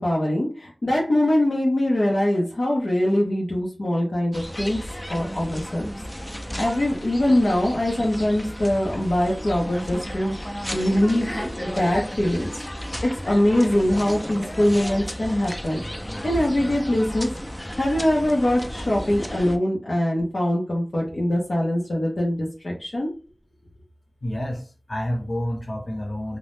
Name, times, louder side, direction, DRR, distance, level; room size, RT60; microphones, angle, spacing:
voice 1, 0.0-4.8 5.1-5.9 6.6-10.4 10.7-12.5 13.0-15.8 16.2-17.3 17.7-23.1, left 1 dB, 75° left, -4 dB, 0.7 m, -23 dB
sound 1, 4.3-19.6, equal, 15° left, 0.5 m, -33 dB
voice 2, 24.2-26.4, left 1 dB, 50° left, 2 dB, 1.0 m, -29 dB
2.6 x 2.1 x 3.4 m, 0.35 s
wide cardioid pair, 40°, 0 cm